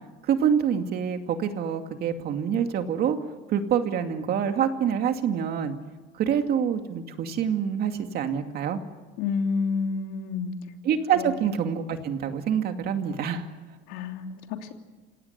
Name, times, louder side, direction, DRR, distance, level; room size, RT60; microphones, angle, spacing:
voice 1, 0.3-3.2 3.5-5.7 6.1-8.8 10.8-13.4, right 8 dB, 50° right, 6 dB, 2.4 m, -26 dB
voice 2, 9.2-10.5 11.2-11.3 13.9-14.3, left 5 dB, 85° left, 4 dB, 3.1 m, -28 dB
28.5 x 17.5 x 9.8 m, 1.3 s
cardioid pair, 145°, 21 cm